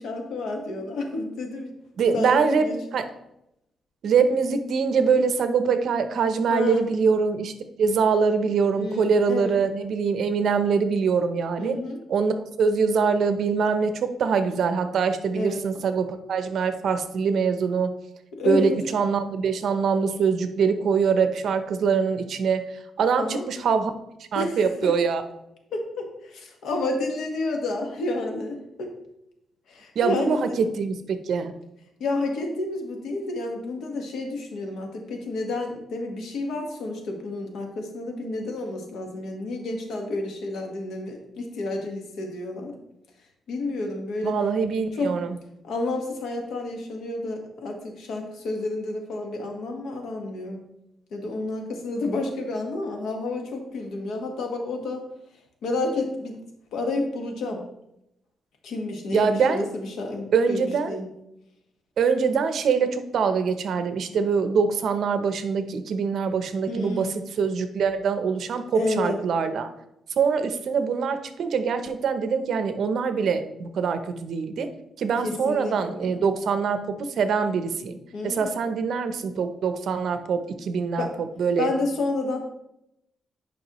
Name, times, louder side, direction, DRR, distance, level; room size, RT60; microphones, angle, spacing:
voice 1, 0.0-1.7 2.1-2.8 6.5-6.9 8.8-9.6 11.6-12.0 15.3-15.6 18.4-18.7 23.1-23.5 24.3-24.9 25.7-28.9 29.7-30.6 32.0-42.8 43.5-44.3 45.0-45.1 45.6-50.6 51.1-55.0 55.6-56.4 56.7-57.6 58.6-61.1 66.7-67.2 68.7-69.2 75.2-76.2 78.1-78.6 81.0-81.1 81.6-82.4, left 2 dB, 80° left, 3 dB, 1.4 m, -30 dB
voice 2, 2.0-3.1 4.0-7.5 7.8-11.8 12.1-17.9 18.4-23.9 24.3-25.2 29.9-31.5 44.2-45.4 59.1-59.7 60.3-61.0 62.0-69.7 70.2-74.7 75.0-78.0 78.2-81.7, right 5 dB, 60° right, 9 dB, 0.7 m, -24 dB
9.4 x 5.3 x 3.0 m, 0.83 s
cardioid pair, 145°, 0 cm